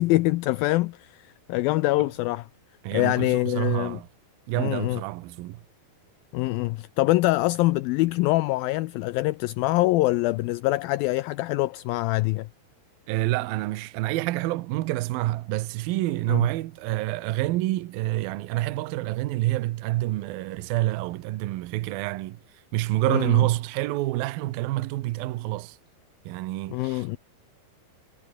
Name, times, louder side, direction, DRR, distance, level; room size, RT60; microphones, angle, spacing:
voice 1, 0.0-2.5 2.9-4.0 4.6-5.0 6.3-12.5 16.3-16.5 23.1-23.4 26.7-27.2, left 19 dB, 80° left, 2.2 m, -24 dB
voice 2, 2.8-4.1 4.5-5.6 13.1-22.4 22.7-25.8 26.3-27.2, right 17 dB, 75° right, 2.6 m, -27 dB
omnidirectional pair, 4.6 m